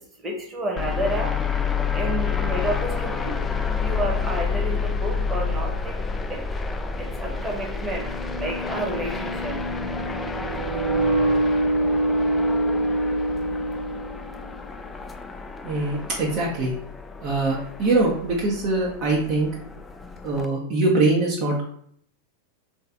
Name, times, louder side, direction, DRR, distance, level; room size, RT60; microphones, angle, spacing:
voice 1, 0.2-1.3 1.9-3.3 3.8-5.9 6.3-6.4 7.0-8.1 8.4-9.6, right 1 dB, 15° right, 0 dB, 1.1 m, -30 dB
sound 1, 0.8-20.5, left 5 dB, 15° left, 0.3 m, -29 dB
sound 2, 6.1-6.2 7.7-14.5, right 1 dB, 75° right, 1.2 m, -25 dB
voice 2, 15.6-16.7 17.2-19.5 20.2-21.6, right 2 dB, 40° right, -3 dB, 0.7 m, -23 dB
3.2 x 2.7 x 3.5 m, 0.63 s
figure-of-eight pair, 90°, 0 cm